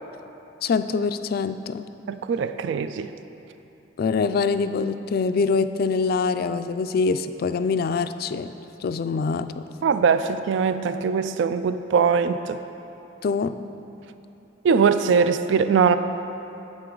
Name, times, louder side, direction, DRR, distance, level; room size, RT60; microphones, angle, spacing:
voice 1, 0.6-1.9 4.0-8.5 8.8-9.6 13.2-13.5, left 4 dB, 55° left, 11 dB, 0.3 m, -24 dB
voice 2, 2.1-3.1 9.8-12.6 14.6-16.0, right 6 dB, 75° right, 11 dB, 0.3 m, -21 dB
9.9 x 7.9 x 3.8 m, 2.9 s
head